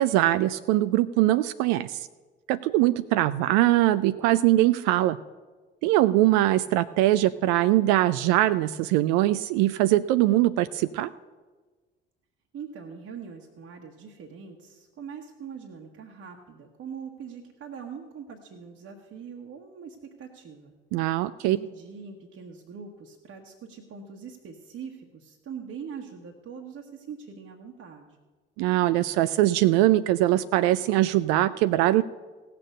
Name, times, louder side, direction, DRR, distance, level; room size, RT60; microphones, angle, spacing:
voice 1, 0.0-2.1 2.5-5.2 5.8-11.1 20.9-21.6 28.6-32.0, right 15 dB, 65° right, 13 dB, 0.4 m, -22 dB
voice 2, 12.5-20.7 21.4-28.2, right 6 dB, 50° right, 1 dB, 1.3 m, -42 dB
16.5 x 6.8 x 6.5 m, 1.3 s
hypercardioid pair, 55°, 29 cm